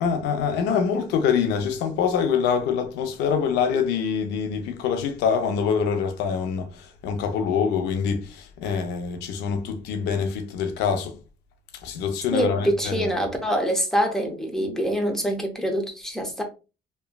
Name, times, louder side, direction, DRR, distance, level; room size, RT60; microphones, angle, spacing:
voice 1, 0.0-11.2 11.8-13.2, left 6 dB, 90° left, 0.6 m, -25 dB
voice 2, 12.3-16.4, equal, 5° left, 0.7 m, -25 dB
3.0 x 2.2 x 2.2 m
cardioid pair, 110°, 17 cm